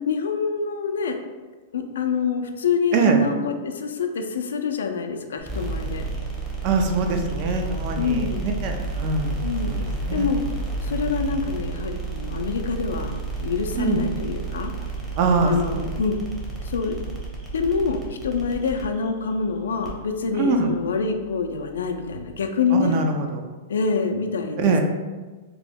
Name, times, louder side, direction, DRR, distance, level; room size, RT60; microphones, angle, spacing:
voice 1, 0.1-1.2 1.7-6.0 8.0-8.5 9.4-9.8 10.1-10.4 10.8-14.7 15.4-16.2 16.6-17.0 17.5-23.0 23.7-24.8, left 5 dB, 90° left, 5 dB, 0.3 m, -26 dB
sound 1, 5.4-22.4, right 3 dB, 15° right, 0.7 m, -32 dB
voice 2, 6.6-9.4 9.6-9.9 10.2-10.3 13.7-14.0 15.2-15.8 20.3-20.7 22.7-23.4 24.6-24.8, right 4 dB, 50° right, 4 dB, 0.4 m, -23 dB
2.9 x 2.0 x 3.5 m, 1.3 s
hypercardioid pair, 130°, 0 cm